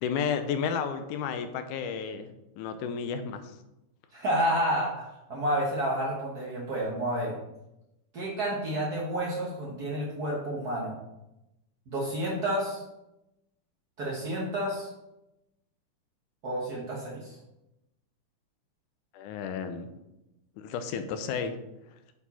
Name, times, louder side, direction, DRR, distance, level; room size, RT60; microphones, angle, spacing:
voice 1, 0.0-2.3 2.6-3.5 19.1-19.9 20.6-21.6, left 6 dB, 85° left, 9 dB, 2.1 m, -32 dB
voice 2, 4.1-7.4 8.1-10.9 11.9-12.8 14.0-14.9 16.4-17.4, right 1 dB, 80° right, -4 dB, 0.8 m, -30 dB
8.1 x 4.8 x 4.1 m, 0.93 s
omnidirectional pair, 3.6 m